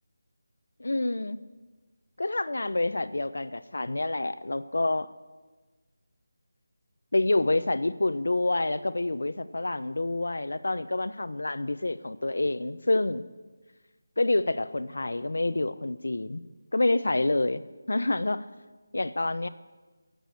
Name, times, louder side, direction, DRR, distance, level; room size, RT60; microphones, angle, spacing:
voice 1, 0.8-1.4 2.2-5.1 7.1-13.2 14.2-16.4 16.7-17.6 17.9-18.5 18.9-19.5, left 2 dB, 80° left, 14 dB, 0.9 m, -27 dB
21.5 x 8.0 x 8.0 m, 1.3 s
figure-of-eight pair, 175°, 0 cm